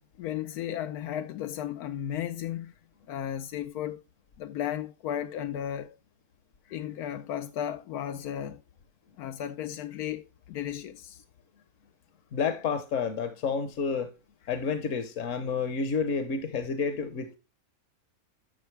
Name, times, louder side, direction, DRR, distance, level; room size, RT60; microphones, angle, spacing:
voice 1, 0.0-2.7 3.1-4.0 4.4-6.0 6.7-8.6 9.2-11.2, left 10 dB, 90° left, 1.2 m, -34 dB
voice 2, 12.3-14.1 14.5-17.4, left 5 dB, 60° left, 1.2 m, -30 dB
12.0 x 6.6 x 3.2 m
omnidirectional pair, 1.6 m